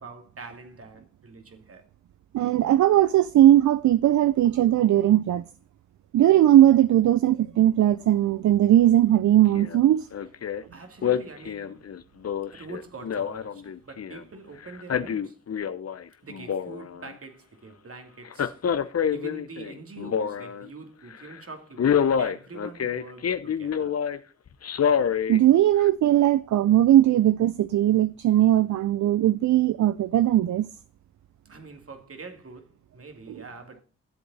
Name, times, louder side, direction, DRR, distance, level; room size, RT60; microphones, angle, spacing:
voice 1, 0.0-1.8 10.7-11.9 12.5-15.4 16.2-18.6 19.1-24.0 31.4-33.8, right 3 dB, 50° right, 2.5 m, -44 dB
voice 2, 2.3-5.4 6.1-10.1 25.3-30.7, right 12 dB, 70° right, 0.5 m, -19 dB
Male speech man speaking, 9.6-9.8 10.1-10.6 11.0-14.2 14.7-16.0 16.3-17.1 18.3-20.7 21.1-21.3 21.8-24.2 24.6-25.4 25.9-26.0, left 8 dB, 55° left, 0.9 m, -27 dB
14.0 x 7.8 x 4.1 m
supercardioid pair, 40°, 30 cm